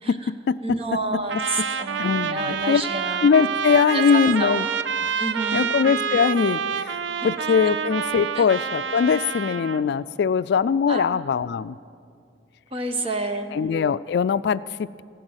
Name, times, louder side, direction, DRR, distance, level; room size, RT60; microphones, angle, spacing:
voice 1, 0.1-1.0 2.0-2.8 3.2-4.7 5.0-5.1 5.5-11.8 13.5-15.0, left 6 dB, 65° left, 16 dB, 0.3 m, -22 dB
voice 2, 0.6-3.2 3.9-4.6 5.2-5.7 8.3-8.5 10.9-11.2 12.7-13.6, right 2 dB, 30° right, 6 dB, 1.1 m, -29 dB
Trumpet, 1.3-9.9, right 7 dB, 80° right, 0.6 m, -27 dB
15.5 x 11.5 x 8.0 m, 2.2 s
head